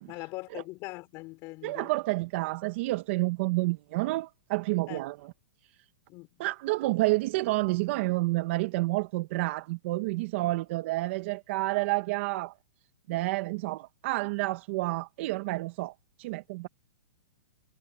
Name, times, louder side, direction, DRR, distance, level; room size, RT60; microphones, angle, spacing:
voice 1, 0.1-1.9 4.9-5.0 6.1-6.4, left 23 dB, 30° left, 4.5 m, -41 dB
voice 2, 1.6-5.2 6.4-12.5 13.1-16.7, right 21 dB, 40° right, 1.2 m, -29 dB
hypercardioid pair, 155°, 9 cm